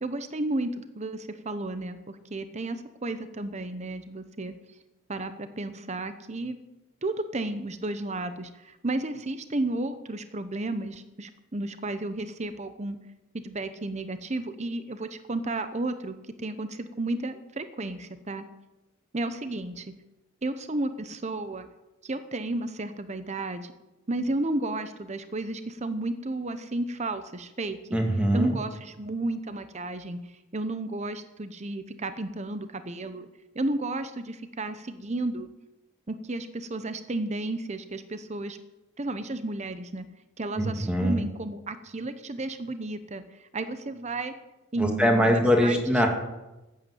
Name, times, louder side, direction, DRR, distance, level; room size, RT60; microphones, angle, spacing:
voice 1, 0.0-4.5 5.1-6.6 7.0-13.0 13.3-18.4 19.1-19.9 20.4-21.7 22.0-23.7 24.1-28.0 28.3-30.2 30.5-33.3 33.5-35.5 36.1-38.6 39.0-40.0 40.4-44.3 44.7-46.0, right 2 dB, 35° right, 10 dB, 0.8 m, -32 dB
voice 2, 27.9-28.5 40.6-41.2 44.8-46.1, equal, 5° right, 2 dB, 2.2 m, -22 dB
14.0 x 9.0 x 7.8 m, 1.0 s
head